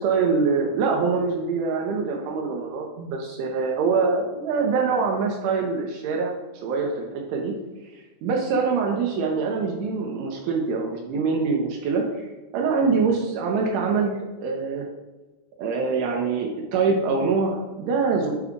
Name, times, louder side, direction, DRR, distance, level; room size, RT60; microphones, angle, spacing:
voice 1, 0.0-6.3 6.6-7.5 7.9-12.3 12.5-14.9 15.6-18.3, right 4 dB, 80° right, 0 dB, 2.9 m, -24 dB
8.1 x 4.8 x 3.6 m, 1.2 s
omnidirectional pair, 5.9 m